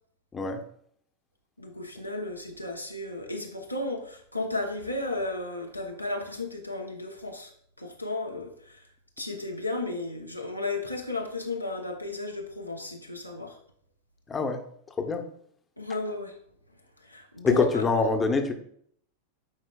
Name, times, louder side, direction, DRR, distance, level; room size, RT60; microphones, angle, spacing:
voice 1, 0.3-0.6 14.3-14.6 15.0-15.2 17.4-18.5, left 4 dB, 20° left, 5 dB, 0.9 m, -25 dB
voice 2, 1.6-7.5 7.8-8.9 9.2-13.6 15.8-16.4 17.0-17.8, left 2 dB, 90° left, 1 dB, 0.9 m, -34 dB
9.5 x 4.9 x 2.3 m, 0.63 s
figure-of-eight pair, 90°, 0 cm